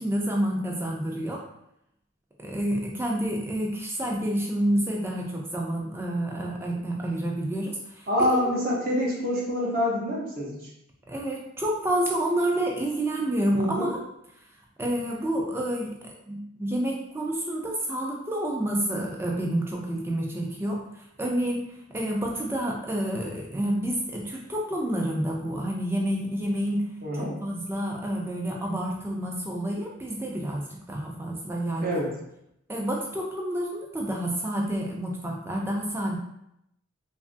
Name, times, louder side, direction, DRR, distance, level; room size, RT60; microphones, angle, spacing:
voice 1, 0.0-1.4 2.4-8.3 11.1-14.0 14.8-21.6 21.9-32.0 32.7-36.2, right 1 dB, 10° right, -1 dB, 0.3 m, -29 dB
voice 2, 8.1-10.6 13.5-13.9 27.0-27.4 31.8-32.1, equal, 45° right, -4 dB, 0.7 m, -26 dB
3.0 x 2.4 x 2.5 m, 0.80 s
head